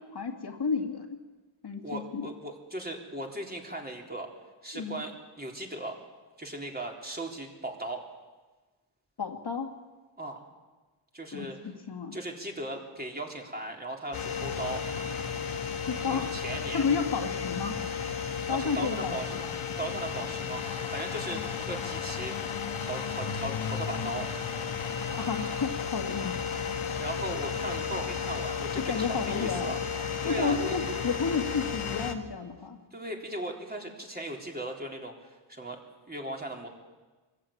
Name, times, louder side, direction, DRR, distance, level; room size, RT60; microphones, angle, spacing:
voice 1, 0.1-1.1 1.6-2.3 4.7-5.0 9.2-9.8 11.3-12.2 15.9-16.3 16.7-17.8 18.5-19.5 21.3-21.4 25.1-26.4 28.9-29.7 30.2-32.8, left 5 dB, 50° left, 4 dB, 2.3 m, -31 dB
voice 2, 1.8-4.3 4.6-6.0 6.4-8.0 10.2-10.4 11.1-11.6 12.1-14.8 16.1-16.9 18.5-19.3 19.8-21.4 21.7-22.4 22.7-24.3 26.9-29.8 30.2-30.7 32.9-35.8 36.1-36.7, right 1 dB, 20° right, 0 dB, 3.8 m, -37 dB
sound 1, 14.1-32.1, left 6 dB, 75° left, 1.7 m, -33 dB
23.5 x 15.0 x 8.7 m, 1.3 s
wide cardioid pair, 90°, 49 cm